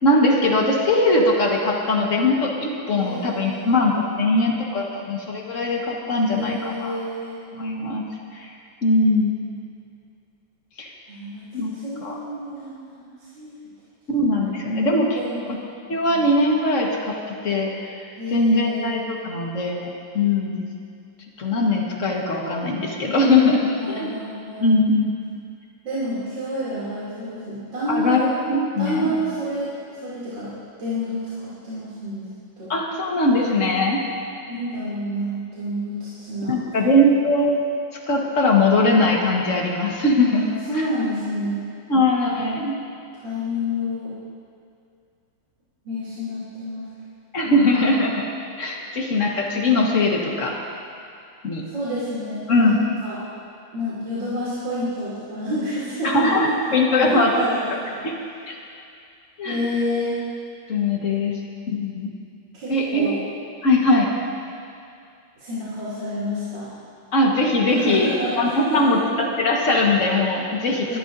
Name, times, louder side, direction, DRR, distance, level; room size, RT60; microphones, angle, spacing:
voice 1, 0.0-7.0 7.5-8.0 8.3-8.5 8.8-9.3 10.8-10.9 11.5-11.7 12.0-12.2 14.1-15.6 15.9-20.7 21.4-24.1 24.6-25.1 27.9-28.2 28.5-29.2 32.7-34.0 36.5-37.6 38.1-40.4 40.7-40.8 41.9-42.7 47.3-48.3 48.6-50.5 51.4-51.6 52.5-52.9 56.0-57.3 58.0-58.1 58.4-58.6 59.4-59.6 60.7-61.3 61.7-62.1 62.7-63.1 63.6-64.1 67.1-68.1 68.3-71.0, left 2 dB, 40° left, -1 dB, 1.6 m, -21 dB
voice 2, 2.9-3.8 6.2-7.4 11.1-13.0 13.4-13.5 15.1-15.5 16.0-16.2 18.2-18.9 23.8-24.7 25.8-28.3 28.8-29.7 30.0-30.5 30.8-32.2 32.6-32.7 34.5-36.8 40.7-41.6 43.2-44.1 45.9-46.8 47.4-47.9 51.7-52.7 53.0-53.2 53.7-56.3 56.9-57.6 57.9-58.0 59.4-60.1 62.5-63.2 65.4-66.7 67.7-69.0 70.8-71.0, equal, 60° right, -12 dB, 3.6 m, -29 dB
21.5 x 13.0 x 2.7 m, 2.4 s
omnidirectional pair, 2.3 m